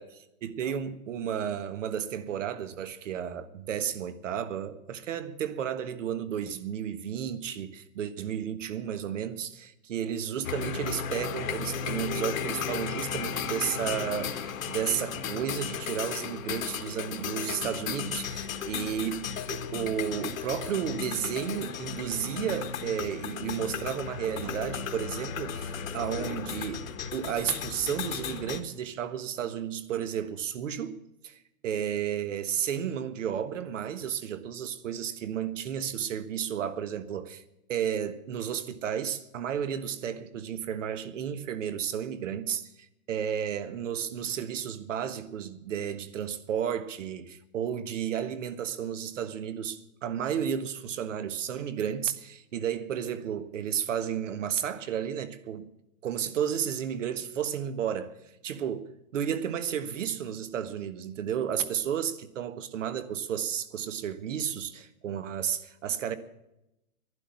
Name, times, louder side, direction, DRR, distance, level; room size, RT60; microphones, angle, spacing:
voice 1, 0.4-37.4 37.7-55.7 56.0-58.1 58.4-66.1, right 9 dB, 55° right, 1.5 m, -32 dB
sound 1, 10.4-28.6, left 7 dB, 65° left, 1.6 m, -35 dB
11.5 x 11.0 x 9.9 m
hypercardioid pair, 165°, 43 cm